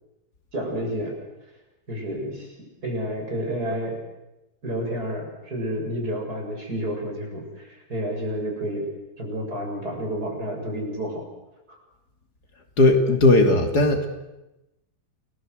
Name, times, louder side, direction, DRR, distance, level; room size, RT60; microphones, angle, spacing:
voice 1, 0.5-1.2 1.9-2.6 2.8-4.0 4.6-8.9 9.2-11.2 11.7-11.8, equal, 75° right, 0 dB, 7.3 m, -30 dB
voice 2, 12.8-14.1, left 2 dB, 80° left, 5 dB, 3.4 m, -17 dB
28.5 x 19.0 x 8.0 m, 0.97 s
omnidirectional pair, 1.7 m